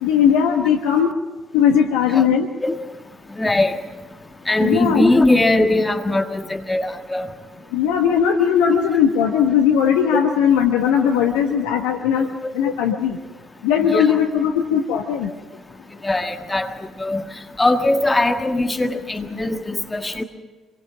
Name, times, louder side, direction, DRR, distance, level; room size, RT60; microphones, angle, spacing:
voice 1, 0.0-1.1 1.5-2.5 4.6-5.0 7.7-13.2 13.6-15.3, left 8 dB, 70° left, 4 dB, 1.2 m, -18 dB
voice 2, 3.4-3.8 4.5-7.3 10.1-10.2 12.2-12.5 13.8-14.2 16.0-16.7 17.0-17.2 17.6-20.2, left 2 dB, 20° left, 5 dB, 1.7 m, -20 dB
26.5 x 23.0 x 5.9 m, 1.2 s
figure-of-eight pair, 45°, 0 cm